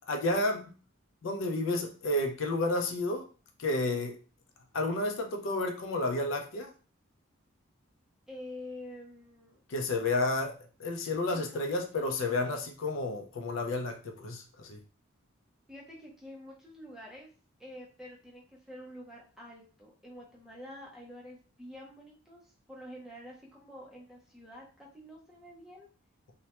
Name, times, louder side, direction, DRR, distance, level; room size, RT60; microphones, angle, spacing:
voice 1, 0.1-0.7 1.2-3.2 3.6-4.2 4.7-6.7 9.7-14.8, left 2 dB, 70° left, 4 dB, 0.4 m, -31 dB
voice 2, 8.3-9.6 11.3-11.6 12.0-12.7 15.7-17.3 17.6-25.9, left 1 dB, ahead, -3 dB, 0.4 m, -48 dB
2.2 x 2.0 x 2.8 m, 0.37 s
head